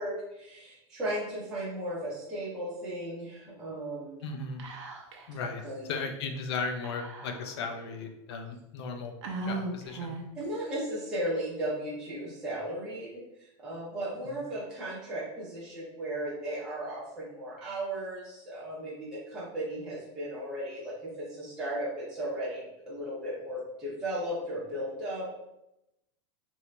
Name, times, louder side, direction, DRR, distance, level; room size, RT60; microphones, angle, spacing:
voice 1, 0.0-4.2 5.6-5.9 10.4-25.3, right 1 dB, 5° right, -10 dB, 0.6 m, -36 dB
voice 2, 4.2-4.6 5.3-9.1 9.4-10.1, left 4 dB, 60° left, 4 dB, 0.5 m, -36 dB
Whispering, 4.6-5.3 5.6-5.7 6.8-7.7 8.3-8.4 9.2-10.4, right 3 dB, 90° right, 0.7 m, -37 dB
3.0 x 2.7 x 3.2 m, 0.89 s
supercardioid pair, 180°, 15 cm